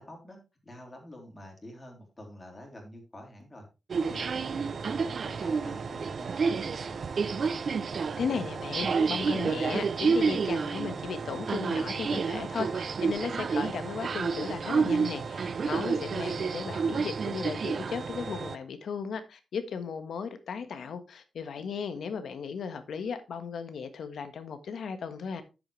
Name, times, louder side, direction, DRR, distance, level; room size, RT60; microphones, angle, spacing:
voice 1, 0.0-3.7 4.1-7.0 9.0-9.1 16.6-17.0, left 1 dB, 20° left, 3.4 m, -47 dB
sound 1, 3.9-18.5, right 5 dB, 50° right, 0.5 m, -30 dB
voice 2, 8.2-25.4, left 6 dB, 75° left, 1.4 m, -36 dB
10.0 x 7.9 x 3.2 m
wide cardioid pair, 145°, 0 cm